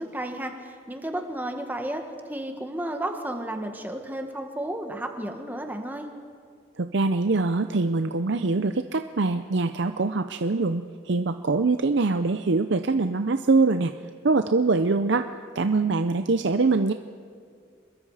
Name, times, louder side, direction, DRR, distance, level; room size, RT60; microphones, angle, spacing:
voice 1, 0.0-6.1, right 1 dB, 10° right, 4 dB, 1.5 m, -33 dB
voice 2, 6.8-13.9 14.2-15.3 15.5-16.9, right 3 dB, 60° right, 8 dB, 0.6 m, -23 dB
25.5 x 22.0 x 4.9 m, 2.2 s
head